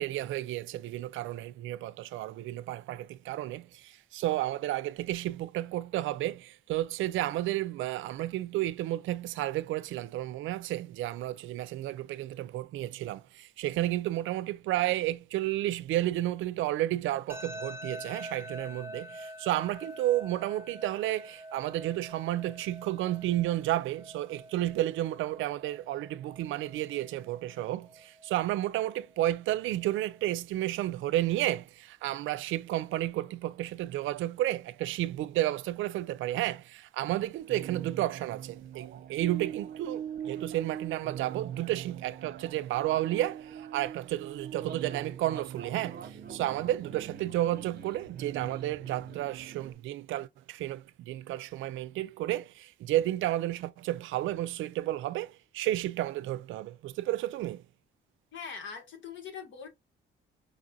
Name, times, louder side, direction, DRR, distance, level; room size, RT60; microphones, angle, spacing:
voice 1, 0.0-57.6, right 14 dB, 80° right, 0.4 m, -32 dB
sound 1, 17.3-30.3, equal, 10° right, 0.8 m, -47 dB
sound 2, 37.4-49.7, right 9 dB, 50° right, 0.9 m, -42 dB
voice 2, 58.3-59.7, left 6 dB, 70° left, 1.8 m, -42 dB
5.2 x 2.5 x 2.7 m
cardioid pair, 90°, 20 cm